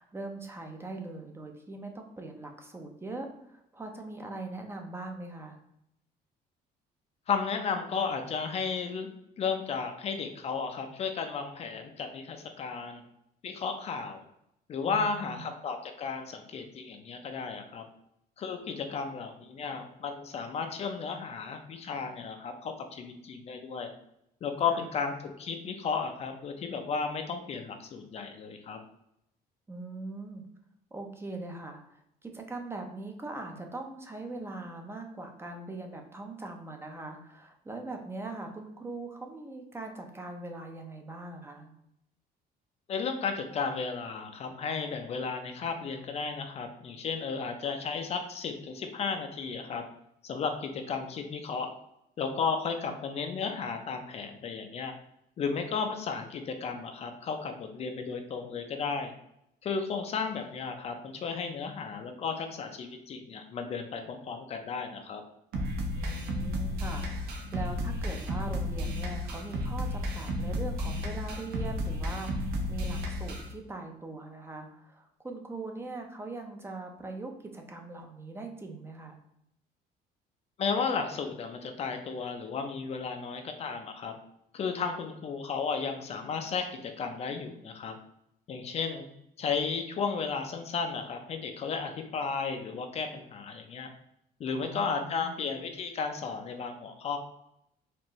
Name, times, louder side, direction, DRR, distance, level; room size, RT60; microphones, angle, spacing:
voice 1, 0.0-5.6 14.8-15.5 24.7-24.9 29.7-30.4 30.9-41.7 52.8-52.9 65.9-79.2 94.6-95.4, right 2 dB, 15° right, 3 dB, 0.5 m, -41 dB
voice 2, 7.3-9.1 9.4-13.0 13.4-14.2 14.7-17.8 18.4-23.9 24.4-28.8 42.9-49.8 50.2-51.7 52.2-54.9 55.4-59.1 59.6-65.2 80.6-84.1 84.5-88.0 88.5-89.1 89.4-93.9 94.4-97.2, left 5 dB, 40° left, 5 dB, 0.5 m, -34 dB
sound 1, 65.5-73.5, left 1 dB, 70° right, 0.8 m, -33 dB
4.4 x 2.5 x 3.0 m, 0.79 s
cardioid pair, 130°, 17 cm